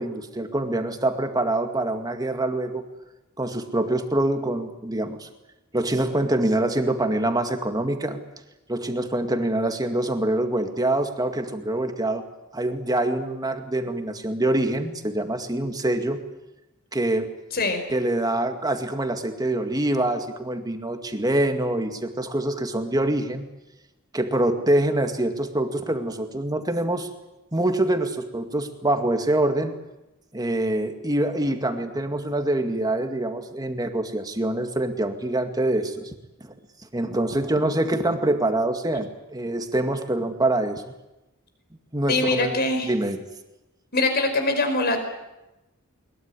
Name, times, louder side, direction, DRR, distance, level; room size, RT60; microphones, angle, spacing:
voice 1, 0.0-2.8 3.4-5.3 5.7-8.2 8.7-12.2 12.5-16.2 16.9-17.3 17.9-23.5 24.1-27.1 27.5-29.8 30.3-36.1 36.4-36.5 36.9-40.9 41.9-42.6 42.9-43.2, right 1 dB, 20° right, 6 dB, 2.1 m, -25 dB
voice 2, 42.1-42.9 43.9-45.0, left 2 dB, 50° left, 6 dB, 5.1 m, -23 dB
21.5 x 21.5 x 9.7 m, 0.97 s
head